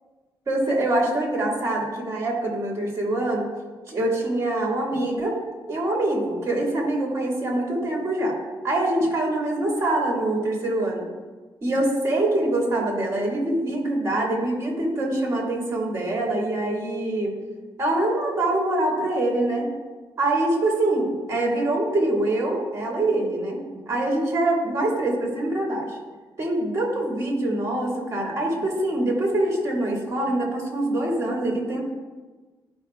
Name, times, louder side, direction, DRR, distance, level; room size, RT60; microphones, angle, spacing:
voice 1, 0.5-3.5 3.9-5.4 5.7-8.4 8.6-11.1 11.6-17.3 17.8-19.7 20.2-26.0 26.4-31.8, right 1 dB, 35° right, -2 dB, 2.2 m, -24 dB
12.5 x 5.2 x 2.4 m, 1.3 s
cardioid pair, 115°, 8 cm